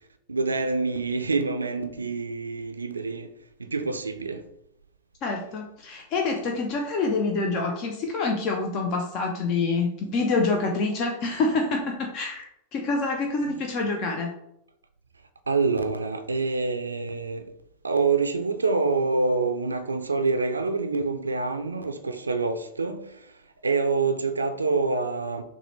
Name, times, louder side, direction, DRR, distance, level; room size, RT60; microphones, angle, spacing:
voice 1, 0.3-3.3 3.6-4.4 15.5-17.5 17.8-23.3 23.6-25.4, right 4 dB, 75° right, 0.4 m, -26 dB
voice 2, 5.2-14.3, left 3 dB, 40° left, 0.5 m, -26 dB
5.9 x 2.1 x 3.1 m
figure-of-eight pair, 90°, 0 cm